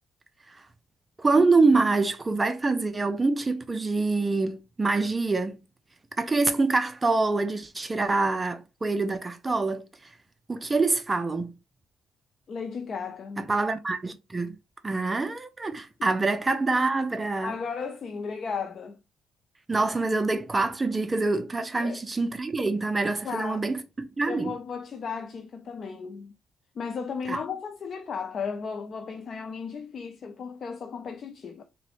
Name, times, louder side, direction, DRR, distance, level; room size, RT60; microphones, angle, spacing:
voice 1, 1.2-5.6 6.2-9.8 10.5-11.5 13.4-14.6 14.8-17.5 19.7-24.6 27.3-27.4, right 3 dB, 25° right, 0.4 m, -25 dB
voice 2, 12.5-13.5 16.0-16.1 17.4-19.0 21.8-22.0 23.2-23.7 24.3-26.3 26.8-31.6, left 5 dB, 50° left, 0.4 m, -35 dB
3.7 x 2.0 x 3.0 m
cardioid pair, 90°, 0 cm